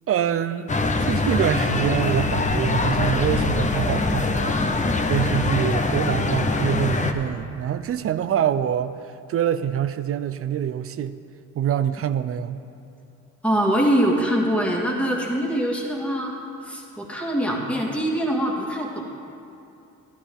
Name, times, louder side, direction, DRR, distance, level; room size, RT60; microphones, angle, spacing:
voice 1, 0.1-0.7 1.0-4.6 5.1-8.9 9.3-11.2 11.6-12.6, right 10 dB, 50° right, 12 dB, 0.4 m, -25 dB
sound 1, 0.7-7.1, left 3 dB, 25° left, 0.8 m, -23 dB
voice 2, 13.4-16.3 16.6-18.9, equal, 5° left, -2 dB, 1.9 m, -23 dB
12.0 x 11.5 x 3.5 m, 2.7 s
cardioid pair, 90°, 30 cm